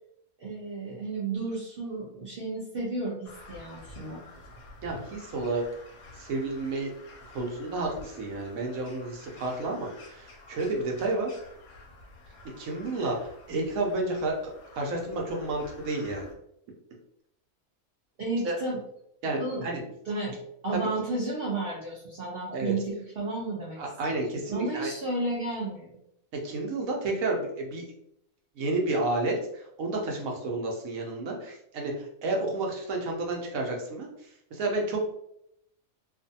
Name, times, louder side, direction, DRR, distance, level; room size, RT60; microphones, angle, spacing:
voice 1, 0.4-4.2 18.2-18.8 19.4-19.7 20.1-20.4 20.6-23.8 24.1-24.2 24.5-26.0, right 2 dB, 55° right, -4 dB, 0.6 m, -32 dB
Crow, 3.2-16.3, left 2 dB, 60° left, 0.7 m, -50 dB
voice 2, 4.8-5.6 6.1-6.9 7.3-11.3 12.6-16.3 18.4-18.6 19.2-19.8 20.7-20.8 22.5-22.7 23.8-24.9 26.4-27.8 28.6-34.1 34.5-35.1, right 2 dB, 75° right, 0 dB, 1.0 m, -31 dB
2.5 x 2.4 x 2.6 m, 0.76 s
omnidirectional pair, 1.5 m